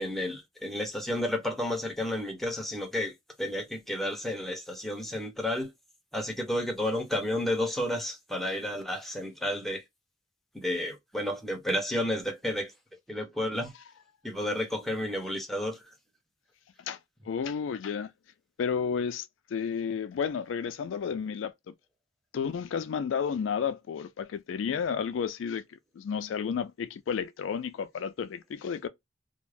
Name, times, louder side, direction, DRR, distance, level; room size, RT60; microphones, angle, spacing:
voice 1, 0.0-3.1 3.4-5.7 6.1-9.8 10.5-12.7 13.1-13.7 14.2-15.8, left 1 dB, ahead, 0.6 m, -31 dB
voice 2, 17.3-18.1 18.6-21.7 22.3-25.6 26.0-28.9, left 6 dB, 80° left, 0.3 m, -32 dB
2.4 x 2.1 x 3.2 m
head